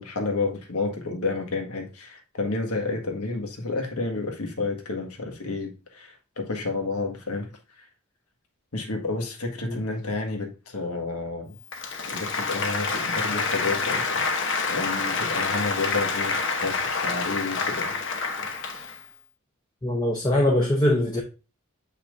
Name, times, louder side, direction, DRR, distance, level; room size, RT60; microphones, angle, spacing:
voice 1, 0.0-7.5 8.7-11.6 12.1-14.2 14.7-17.9 18.4-18.5, left 3 dB, 90° left, 1.7 m, -30 dB
Applause, 11.6-19.1, left 4 dB, 55° left, 1.0 m, -27 dB
voice 2, 19.8-21.2, left 1 dB, 20° left, 0.8 m, -22 dB
7.0 x 5.8 x 2.6 m
head